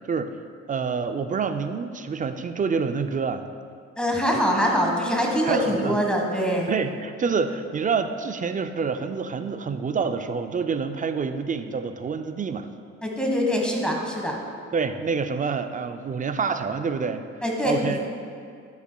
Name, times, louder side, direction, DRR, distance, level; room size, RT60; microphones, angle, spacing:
voice 1, 0.7-3.5 5.5-6.0 6.7-12.7 14.7-17.3 17.6-18.0, right 5 dB, 25° right, 9 dB, 0.4 m, -27 dB
voice 2, 4.0-6.7 13.0-14.4 17.4-18.0, equal, 5° left, -1 dB, 1.4 m, -24 dB
11.0 x 7.1 x 2.3 m, 2.3 s
cardioid pair, 90°, 30 cm